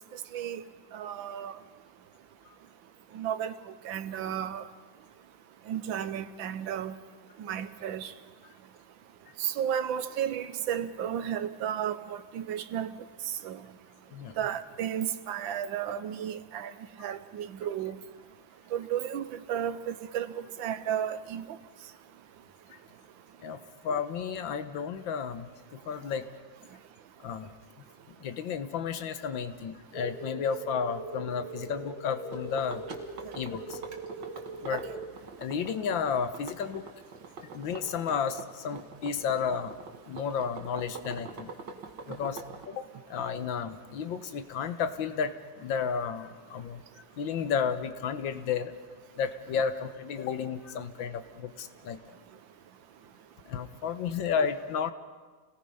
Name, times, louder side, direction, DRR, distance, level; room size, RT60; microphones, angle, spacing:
voice 1, 0.9-1.5 3.1-3.5 3.8-4.6 5.7-6.9 7.4-8.1 9.4-12.9 13.4-13.6 14.4-16.7 17.0-18.0 18.7-21.4 34.7-34.8, right 9 dB, 90° right, 1.7 m, -33 dB
voice 2, 23.8-25.5 25.9-26.3 27.2-27.5 28.2-32.8 33.3-33.8 34.6-34.8 35.4-36.8 37.5-39.8 40.1-41.5 42.1-42.4 42.7-42.9 43.1-46.8 47.2-48.7 49.2-52.0 53.5-54.9, left 6 dB, 90° left, 1.8 m, -32 dB
sound 1, 29.9-34.9, right 2 dB, 50° left, 8.2 m, -41 dB
sound 2, 32.3-42.7, right 4 dB, 70° right, 2.3 m, -44 dB
29.0 x 18.0 x 5.5 m
omnidirectional pair, 2.0 m